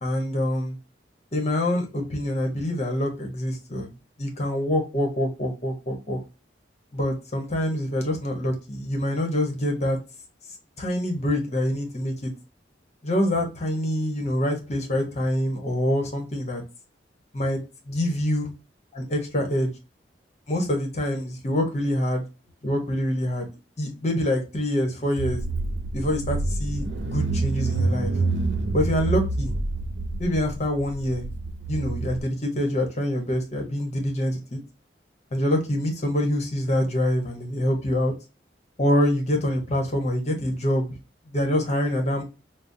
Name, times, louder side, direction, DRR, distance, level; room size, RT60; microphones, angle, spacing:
voice 1, 0.0-0.8 1.3-3.9 4.2-6.2 6.9-10.0 10.8-12.3 13.0-16.6 17.3-17.6 17.9-18.4 19.1-19.7 20.5-22.2 22.6-23.5 23.8-25.4 25.9-28.2 28.7-29.5 30.2-31.2 31.7-34.6 35.3-38.1 38.8-40.9 41.3-42.2, left 1 dB, 40° left, 1.0 m, -25 dB
Car / Engine, 25.2-32.2, right 3 dB, 70° right, 0.5 m, -27 dB
5.2 x 2.0 x 2.6 m
head